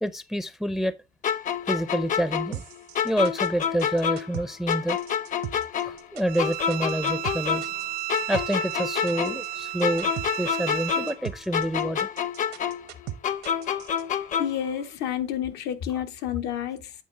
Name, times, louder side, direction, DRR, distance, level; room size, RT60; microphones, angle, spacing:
voice 1, 0.0-0.9 1.7-2.6 3.0-5.0 5.8-7.7 8.3-10.1 10.4-12.1 15.9-16.0, right 1 dB, ahead, 0.4 m, -28 dB
sound 1, 1.2-4.4 4.7-7.8 8.1-11.3 11.5-14.7, left 8 dB, 50° left, 0.8 m, -28 dB
sound 2, 2.5-14.0, right 12 dB, 80° right, 0.9 m, -38 dB
Bowed string instrument, 6.3-11.2, right 15 dB, 60° right, 0.5 m, -33 dB
voice 2, 14.4-17.0, left 10 dB, 80° left, 1.1 m, -30 dB
8.7 x 3.8 x 4.8 m
cardioid pair, 110°, 17 cm